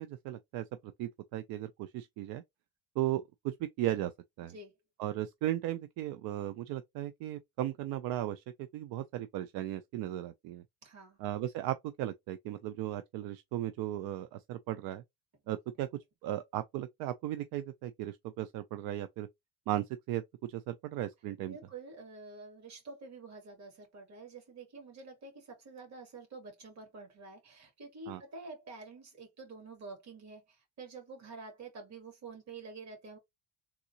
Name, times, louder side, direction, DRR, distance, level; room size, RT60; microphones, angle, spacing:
voice 1, 0.0-2.4 3.0-4.1 4.4-4.5 5.0-8.4 8.7-10.6 11.2-15.0 15.5-15.9 16.2-19.3 19.7-21.6 28.1-28.2, right 13 dB, 80° right, 0.5 m, -36 dB
voice 2, 10.8-11.2 21.5-33.2, right 3 dB, 50° right, 2.3 m, -48 dB
3.6 x 2.8 x 2.7 m
cardioid pair, 125°, 36 cm